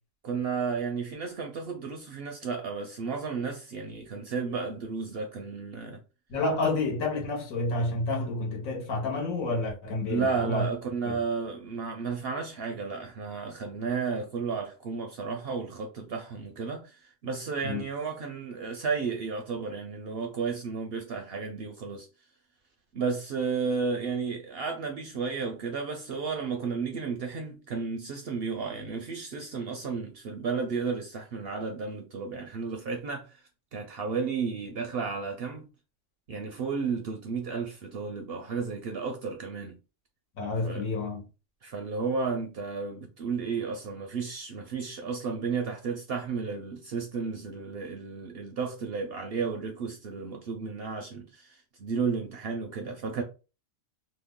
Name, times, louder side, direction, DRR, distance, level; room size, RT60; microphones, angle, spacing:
voice 1, 0.2-6.0 10.1-22.1 22.9-33.4 33.7-35.7 36.3-39.7 40.6-40.8 41.6-53.2, right 5 dB, 65° right, 0.6 m, -33 dB
voice 2, 6.3-10.7 11.0-11.2 17.6-17.8 40.4-41.2, left 2 dB, 80° left, 1.3 m, -29 dB
2.9 x 2.1 x 3.5 m
omnidirectional pair, 1.4 m